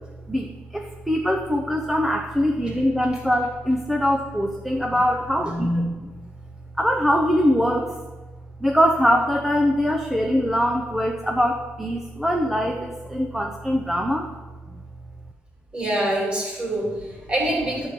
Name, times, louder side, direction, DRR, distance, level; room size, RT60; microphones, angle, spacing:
voice 1, 0.3-5.9 6.8-7.9 8.6-14.3, equal, 5° right, 2 dB, 0.6 m, -22 dB
voice 2, 5.3-5.9 15.7-17.9, right 1 dB, 25° right, -3 dB, 2.8 m, -25 dB
11.0 x 4.4 x 6.8 m, 1.3 s
wide cardioid pair, 165°, 5 cm